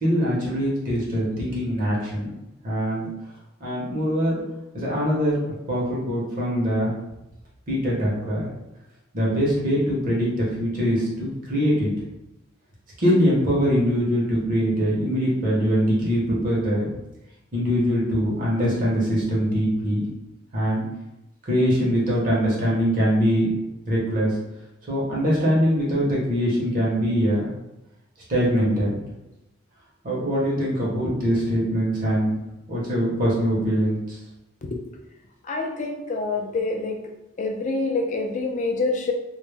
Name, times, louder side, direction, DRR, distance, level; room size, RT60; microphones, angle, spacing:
voice 1, 0.0-2.3 2.6-3.1 3.6-4.4 4.7-6.9 7.7-8.5 9.1-11.9 13.0-16.9 17.5-20.0 20.5-20.9 21.5-23.5 23.9-24.3 24.9-27.5 28.3-29.0 30.0-32.3 32.7-34.2, equal, 40° right, -5 dB, 0.7 m, -23 dB
voice 2, 35.5-37.0 37.4-39.1, left 3 dB, 35° left, 3 dB, 0.3 m, -26 dB
2.1 x 2.0 x 3.2 m, 0.92 s
head